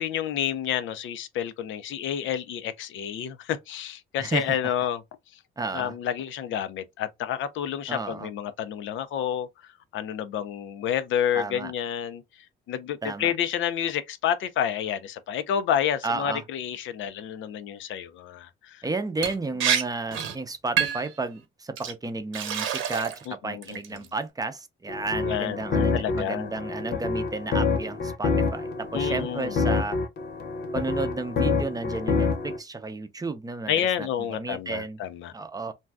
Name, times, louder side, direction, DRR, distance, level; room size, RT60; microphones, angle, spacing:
voice 1, 0.0-5.0 5.7-9.5 9.9-12.2 12.7-18.8 23.3-23.8 25.1-26.5 28.9-29.6 33.7-35.3, left 9 dB, 75° left, 0.5 m, -29 dB
voice 2, 4.2-4.6 5.6-6.0 7.9-8.3 11.3-11.7 13.0-13.3 16.0-16.4 18.8-30.0 30.7-35.0 35.3-35.7, right 3 dB, 20° right, 0.5 m, -32 dB
Liquid, 19.2-19.3 19.6-19.8 20.1-20.4 20.8-21.1 21.8-21.9 22.3-23.2 23.6-24.1, right 8 dB, 85° right, 0.8 m, -27 dB
sound 1, 24.9-32.6, left 4 dB, 55° left, 0.9 m, -27 dB
2.6 x 2.2 x 3.3 m
cardioid pair, 90°, 20 cm